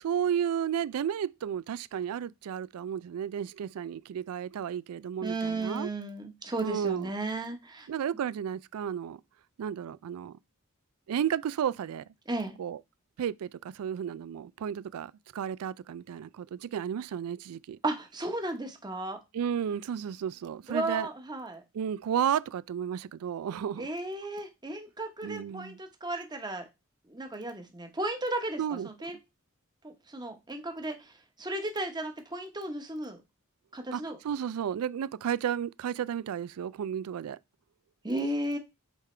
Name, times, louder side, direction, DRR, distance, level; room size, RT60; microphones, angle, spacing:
voice 1, 0.0-5.9 6.6-7.1 7.9-9.2 9.6-10.4 11.1-12.0 12.6-12.8 13.2-17.8 19.3-21.1 21.7-23.9 25.2-25.8 28.6-28.9 33.9-37.4, right 8 dB, 85° right, 0.3 m, -33 dB
voice 2, 5.2-7.9 12.3-12.6 17.8-19.2 20.7-21.6 23.8-26.7 27.1-29.2 29.8-33.2 33.7-34.2 38.0-38.6, right 2 dB, 20° right, 1.1 m, -34 dB
8.0 x 3.6 x 3.3 m
head